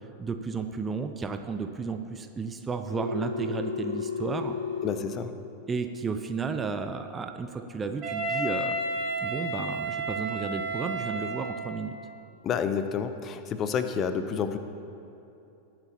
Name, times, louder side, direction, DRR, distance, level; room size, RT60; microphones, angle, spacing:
voice 1, 0.2-4.6 5.7-8.8 9.2-12.0, right 4 dB, 15° right, 7 dB, 0.6 m, -33 dB
Telephone, 2.9-4.9, left 5 dB, 70° right, 1.7 m, -32 dB
voice 2, 4.8-5.3 12.4-14.6, left 7 dB, 30° left, 10 dB, 0.7 m, -29 dB
Wind instrument woodwind instrument, 8.0-11.8, right 2 dB, 35° right, 2.0 m, -31 dB
20.5 x 7.5 x 2.9 m, 2.8 s
figure-of-eight pair, 90°, 0 cm